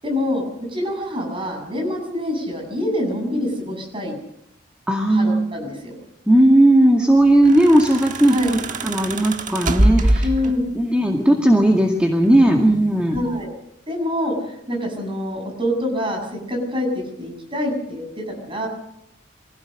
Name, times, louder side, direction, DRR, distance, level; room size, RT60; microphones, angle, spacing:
voice 1, 0.0-4.1 5.1-6.0 8.3-8.5 10.2-10.6 13.1-13.5 13.9-14.4 14.7-16.9 17.2-18.7, left 1 dB, 30° right, 2 dB, 7.3 m, -25 dB
voice 2, 4.9-5.5 6.3-8.3 8.8-10.3 10.7-13.1, right 1 dB, 5° right, 1 dB, 2.1 m, -16 dB
sound 1, 7.3-10.8 12.0-12.7 13.1-13.4, right 1 dB, 45° right, 1.4 m, -23 dB
24.0 x 17.0 x 6.5 m, 0.79 s
head